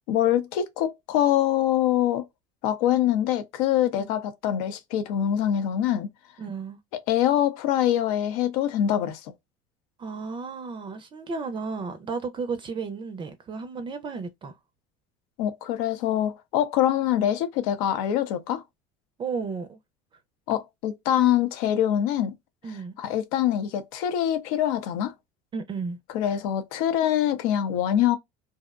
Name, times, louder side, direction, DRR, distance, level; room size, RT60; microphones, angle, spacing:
voice 1, 0.1-2.3 2.6-6.1 6.9-9.3 15.4-18.6 20.5-22.4 23.0-25.1 26.1-28.2, left 11 dB, 85° left, 0.6 m, -24 dB
voice 2, 6.4-6.8 10.0-14.6 19.2-19.8 22.6-22.9 25.5-26.0, right 4 dB, 30° right, 0.4 m, -33 dB
2.6 x 2.0 x 2.3 m
supercardioid pair, 115°, 18 cm